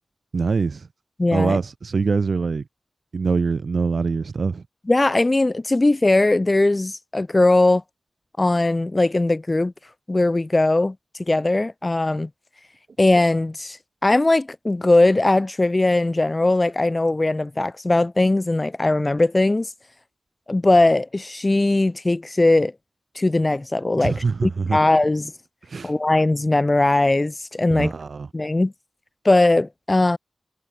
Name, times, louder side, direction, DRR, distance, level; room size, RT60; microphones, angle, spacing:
voice 1, 0.3-0.9 1.3-2.6 3.1-4.6 24.0-24.8 25.7-25.9 27.7-28.3, right 4 dB, 65° right, 0.3 m, -23 dB
voice 2, 1.2-1.6 4.9-7.8 8.4-9.7 10.1-11.0 11.3-12.3 13.0-19.7 20.5-22.7 23.2-25.3 25.8-27.9 28.3-28.7 29.2-30.2, left 2 dB, 25° left, 0.3 m, -19 dB
wide cardioid pair, 95°, 0 cm